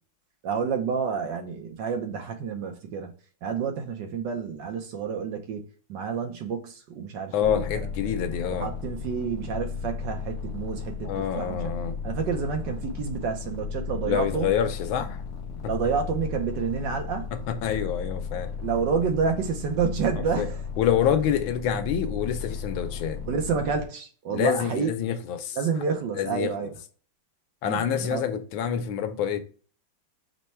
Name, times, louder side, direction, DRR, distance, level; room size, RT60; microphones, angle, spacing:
voice 1, 0.4-3.1 3.4-7.9 8.6-11.7 12.0-14.5 15.7-17.3 18.6-20.6 23.3-24.9 25.6-26.7 27.7-27.8 28.1-28.2, right 6 dB, 70° right, 1.4 m, -29 dB
voice 2, 7.3-8.7 11.0-12.0 14.0-15.2 15.6-15.9 17.3-18.5 20.4-20.5 20.8-23.2 24.3-25.6 26.2-26.5 27.6-29.4, left 9 dB, 80° left, 1.5 m, -27 dB
sound 1, 7.4-23.9, left 6 dB, 60° left, 1.2 m, -35 dB
5.2 x 2.2 x 4.3 m
omnidirectional pair, 2.1 m